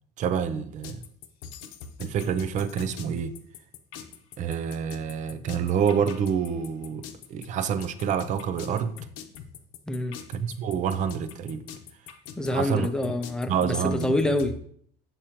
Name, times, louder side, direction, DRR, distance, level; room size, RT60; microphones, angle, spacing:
voice 1, 0.2-1.0 2.0-3.3 4.4-9.0 10.3-11.6 12.5-13.1 13.5-14.1, right 7 dB, 40° right, 0.5 m, -27 dB
sound 1, 0.8-14.5, left 7 dB, 85° left, 0.9 m, -42 dB
voice 2, 9.9-10.2 12.4-14.6, left 1 dB, 5° left, 0.6 m, -27 dB
7.5 x 6.6 x 2.9 m
cardioid pair, 140°, 19 cm